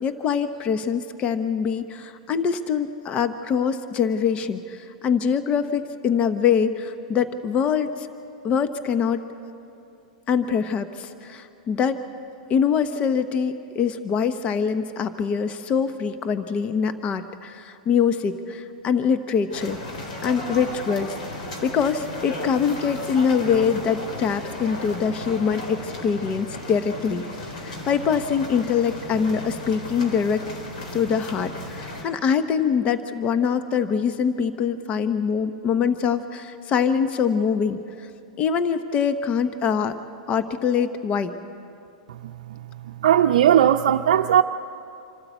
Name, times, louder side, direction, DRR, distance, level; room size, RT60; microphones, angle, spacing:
voice 1, 0.0-8.1 8.4-9.2 10.3-12.0 12.5-19.8 20.2-21.1 21.6-30.4 30.9-38.1 38.4-39.9 40.3-41.3, left 6 dB, 30° left, 10 dB, 0.9 m, -24 dB
sound 1, 19.5-32.0, left 1 dB, 80° left, 4.1 m, -35 dB
voice 2, 43.0-44.4, right 10 dB, 75° right, 4 dB, 0.6 m, -17 dB
26.5 x 12.5 x 8.2 m, 2.6 s
hypercardioid pair, 125°, 4 cm